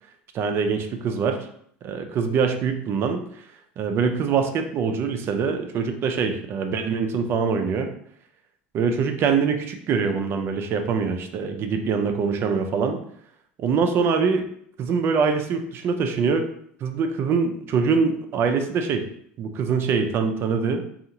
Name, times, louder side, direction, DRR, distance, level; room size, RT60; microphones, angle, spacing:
voice 1, 0.3-1.5 1.8-3.2 3.8-7.9 8.7-13.0 13.6-14.5 14.8-16.4 16.8-19.1 19.4-20.8, right 5 dB, 45° right, 6 dB, 0.4 m, -24 dB
2.6 x 2.4 x 2.8 m, 0.66 s
supercardioid pair, 105°, 6 cm